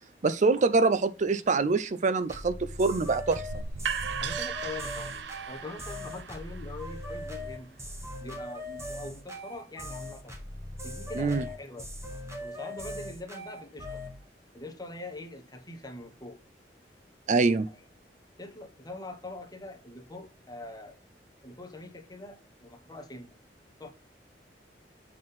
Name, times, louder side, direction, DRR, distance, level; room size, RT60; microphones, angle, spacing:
voice 1, 0.2-3.4 11.2-11.5 17.3-17.7, right 4 dB, 45° right, 0.5 m, -25 dB
sound 1, 2.3-14.2, left 1 dB, 15° right, 1.5 m, -40 dB
sound 2, 3.3-9.1, right 6 dB, 90° right, 0.6 m, -38 dB
voice 2, 4.2-7.7 8.2-10.3 10.8-11.9 12.4-14.0 14.5-16.4 17.7-17.8 18.4-21.0 21.4-23.4 23.8-23.9, left 2 dB, 25° left, 1.4 m, -43 dB
7.6 x 3.8 x 5.8 m
head